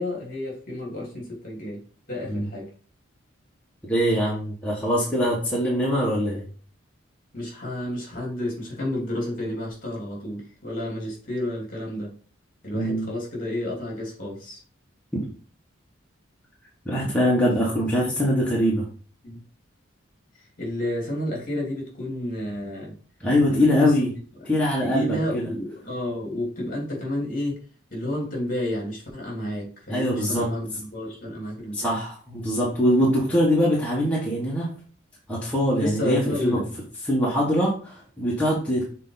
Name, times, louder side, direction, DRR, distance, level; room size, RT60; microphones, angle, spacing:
voice 1, 0.0-1.8 2.1-2.7 7.3-12.1 12.6-14.6 17.3-17.5 19.2-19.4 20.6-22.9 23.5-23.9 24.4-24.5 24.8-27.6 27.9-32.0 35.8-36.7, left 1 dB, 45° left, -2 dB, 2.9 m, -30 dB
voice 2, 3.9-6.4 12.7-13.1 16.8-18.9 23.2-24.1 24.5-25.5 29.9-30.5 31.7-34.7 35.3-36.6 37.0-38.9, equal, 5° left, -6 dB, 1.4 m, -23 dB
6.6 x 4.1 x 3.9 m, 0.42 s
head